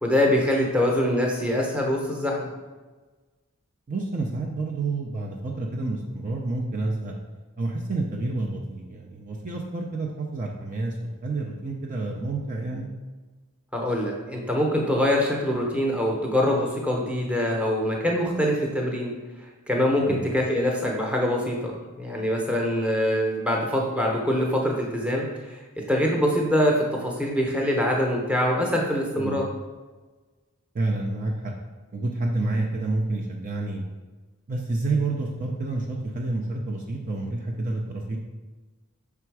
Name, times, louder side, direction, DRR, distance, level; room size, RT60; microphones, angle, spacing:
voice 1, 0.0-2.5 13.7-19.1 19.7-25.2 25.5-25.6 25.9-29.5, left 1 dB, 5° right, -2 dB, 0.8 m, -24 dB
voice 2, 3.9-7.1 7.6-12.9 20.1-20.3 29.2-29.4 30.7-31.5 31.9-33.8 34.5-38.2, right 2 dB, 35° right, -1 dB, 0.5 m, -29 dB
5.8 x 3.5 x 4.7 m, 1.3 s
head